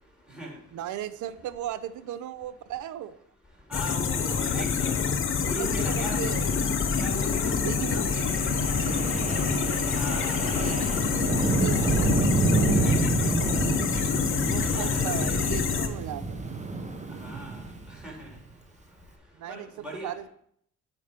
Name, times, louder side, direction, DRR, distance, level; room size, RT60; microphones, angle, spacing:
voice 1, 0.7-3.2 4.5-4.7 5.4-6.5 7.6-8.3 10.6-12.2 14.4-16.4 19.4-19.7 20.0-20.3, right 11 dB, 75° right, 14 dB, 0.6 m, -36 dB
sound 1, 3.7-15.9, left 6 dB, 45° left, 0.8 m, -27 dB
voice 2, 3.7-6.2 7.0-8.3 9.9-10.6 12.7-13.1 13.9-14.0 14.5-15.4 17.2-17.6 18.0-18.3 19.5-20.1, equal, 5° right, -2 dB, 3.5 m, -39 dB
sound 2, 5.6-13.0, equal, 45° right, 1.7 m, -36 dB
Wind, 8.1-18.4, right 3 dB, 25° right, 1.0 m, -29 dB
8.7 x 4.5 x 5.1 m, 0.68 s
cardioid pair, 90°, 30 cm